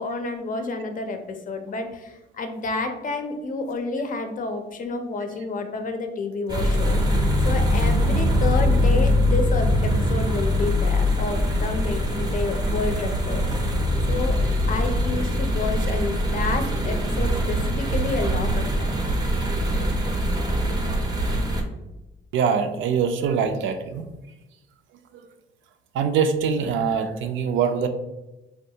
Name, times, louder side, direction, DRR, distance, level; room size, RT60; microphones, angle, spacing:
voice 1, 0.0-13.8 14.1-14.4 14.7-18.9, left 3 dB, 45° left, 6 dB, 0.5 m, -30 dB
sound 1, 6.5-21.6, equal, 20° right, 0.5 m, -22 dB
voice 2, 22.3-24.1 25.9-27.9, right 6 dB, 75° right, 7 dB, 0.4 m, -23 dB
3.4 x 2.3 x 2.7 m, 1.0 s
cardioid pair, 90°, 20 cm